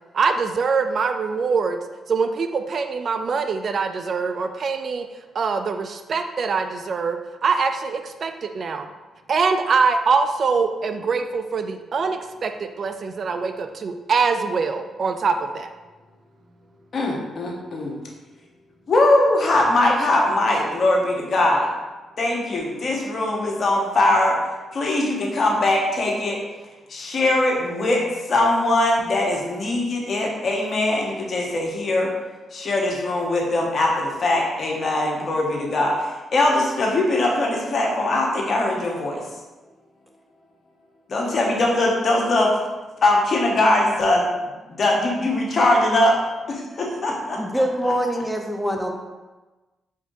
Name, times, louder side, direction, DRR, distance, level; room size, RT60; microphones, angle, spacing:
voice 1, 0.1-1.8 2.1-5.1 5.3-8.9 9.3-15.7, right 5 dB, 55° right, 7 dB, 0.3 m, -23 dB
voice 2, 16.9-17.9 18.9-21.7 22.2-24.4 24.7-26.4 26.9-28.0 28.3-32.1 32.5-39.2 41.1-42.5 43.0-44.3 44.7-46.2 46.5-47.4, left 2 dB, 50° left, -1 dB, 1.1 m, -21 dB
voice 3, 47.3-48.9, equal, 5° right, 2 dB, 0.8 m, -24 dB
4.8 x 4.0 x 2.7 m, 1.2 s
hypercardioid pair, 40°, 0 cm